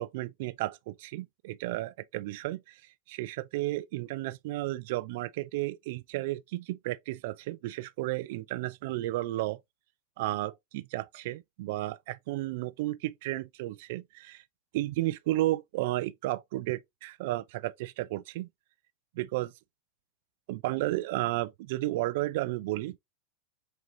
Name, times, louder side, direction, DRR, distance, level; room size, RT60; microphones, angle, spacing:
voice 1, 0.0-2.8 3.1-9.6 10.2-14.4 14.7-18.5 19.2-19.5 20.5-23.0, right 17 dB, 60° right, 0.4 m, -33 dB
3.8 x 3.3 x 2.8 m
supercardioid pair, 150°, 0 cm